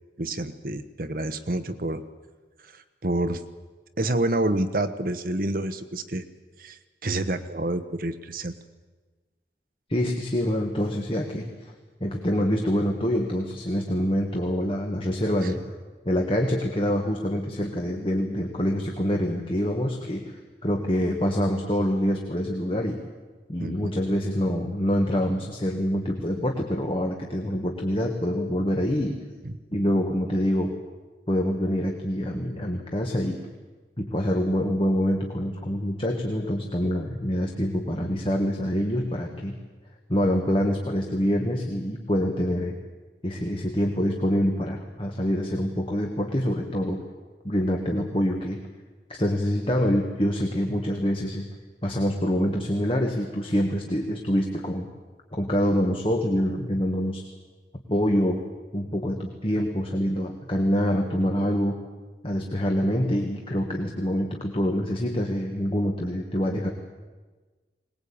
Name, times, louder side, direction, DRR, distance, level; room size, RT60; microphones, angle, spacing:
voice 1, 0.2-2.0 2.7-3.4 4.0-6.2 6.6-8.5 15.4-15.5 23.6-23.9, right 2 dB, 50° right, 10 dB, 1.0 m, -28 dB
voice 2, 9.9-11.7 12.0-15.6 16.0-23.0 23.5-29.2 29.7-30.7 31.3-33.4 34.0-39.5 40.1-42.7 43.2-47.0 47.4-48.6 49.1-51.4 51.8-54.9 55.3-57.2 57.9-58.4 58.7-61.8 62.2-66.7, equal, 30° left, 2 dB, 1.7 m, -26 dB
22.0 x 19.5 x 8.7 m, 1.3 s
head